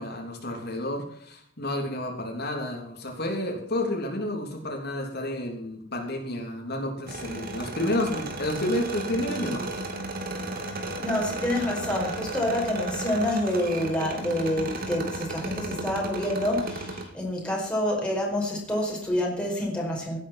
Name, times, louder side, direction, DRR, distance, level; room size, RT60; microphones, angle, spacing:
voice 1, 0.0-9.7, left 1 dB, 55° left, 3.5 m, -30 dB
sound 1, 7.1-17.0, right 2 dB, 50° right, 3.3 m, -34 dB
voice 2, 11.0-20.2, left 1 dB, 5° left, 5.2 m, -27 dB
17.0 x 9.9 x 6.0 m
head